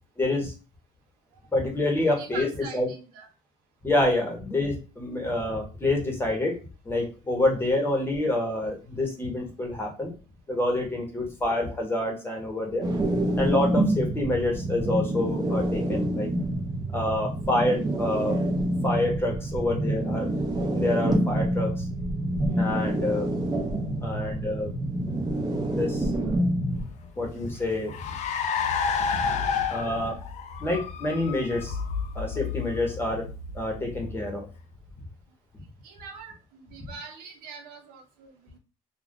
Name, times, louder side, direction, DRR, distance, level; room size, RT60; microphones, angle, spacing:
voice 1, 0.2-0.5 1.5-2.5 2.7-2.9 3.8-6.5 6.9-10.1 10.5-12.9 13.4-16.3 16.9-18.4 18.8-20.3 20.7-21.8 22.6-23.3 24.0-24.7 25.7-26.4 27.2-27.9 29.2-29.3 29.7-30.2 30.6-31.8 32.1-33.3 33.5-34.5, left 2 dB, 15° left, 1 dB, 0.9 m, -27 dB
voice 2, 2.1-3.3 26.4-26.5 35.8-38.6, right 4 dB, 80° right, 3 dB, 0.9 m, -43 dB
sound 1, 12.8-26.8, right 1 dB, 25° right, 0.7 m, -27 dB
Car, 26.8-34.6, left 6 dB, 50° left, 0.4 m, -31 dB
2.4 x 2.3 x 3.6 m, 0.33 s
cardioid pair, 130°, 15 cm